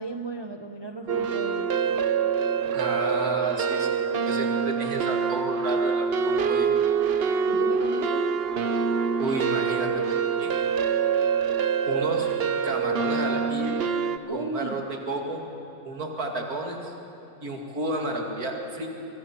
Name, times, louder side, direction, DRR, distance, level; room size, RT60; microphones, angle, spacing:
voice 1, 0.0-1.7 7.5-8.3 14.3-14.8, right 3 dB, 25° right, 6 dB, 0.6 m, -34 dB
sound 1, 1.1-14.2, right 6 dB, 50° right, 0.9 m, -25 dB
voice 2, 2.7-6.7 9.2-10.5 11.9-12.3 12.6-13.8 14.3-15.5 15.8-16.9 17.4-18.9, right 2 dB, 85° right, 2 dB, 2.8 m, -31 dB
24.5 x 23.5 x 6.0 m, 2.8 s
omnidirectional pair, 1.5 m